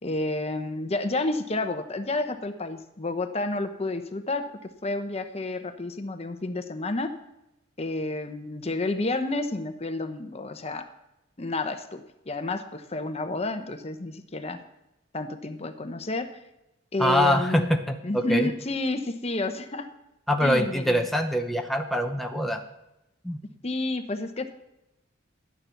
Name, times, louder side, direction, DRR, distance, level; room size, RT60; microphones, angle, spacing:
voice 1, 0.0-7.1 7.8-10.9 11.4-14.6 15.1-16.3 16.9-17.7 18.0-19.9 20.4-21.1 23.6-24.5, left 2 dB, 30° left, 8 dB, 0.8 m, -30 dB
voice 2, 17.0-18.5 20.3-22.6 23.2-23.4, equal, ahead, 3 dB, 0.7 m, -24 dB
12.0 x 9.7 x 5.8 m, 0.90 s
head